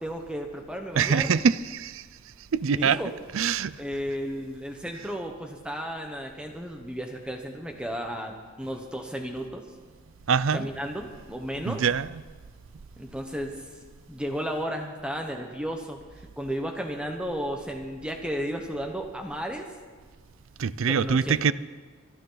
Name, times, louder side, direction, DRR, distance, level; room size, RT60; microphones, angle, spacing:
voice 1, 0.0-1.4 2.7-3.1 3.8-9.6 10.5-11.8 13.0-13.6 14.1-16.0 16.4-19.7 20.9-21.5, equal, 5° right, 1.1 m, -33 dB
voice 2, 1.0-2.0 2.5-3.0 3.3-3.7 10.3-10.7 11.7-12.1 20.6-21.5, right 6 dB, 80° right, 0.5 m, -24 dB
24.5 x 12.0 x 4.0 m
head